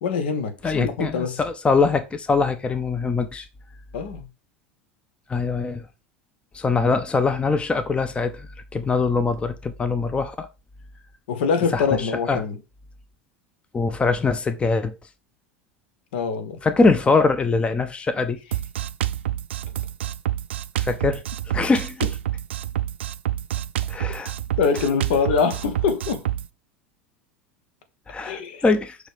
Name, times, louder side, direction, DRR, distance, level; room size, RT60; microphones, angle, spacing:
voice 1, 0.0-1.4 3.9-4.3 11.3-12.6 16.1-16.6 24.6-26.2 28.2-28.6, left 5 dB, 65° left, 1.0 m, -24 dB
voice 2, 0.6-3.5 5.3-5.8 6.5-10.5 11.7-12.4 13.7-15.0 16.6-18.4 20.8-22.0 23.9-24.3 28.1-29.0, left 4 dB, 15° left, 0.6 m, -23 dB
Drum kit, 18.5-26.5, right 12 dB, 70° right, 0.4 m, -28 dB
6.2 x 3.2 x 5.1 m
figure-of-eight pair, 80°, 6 cm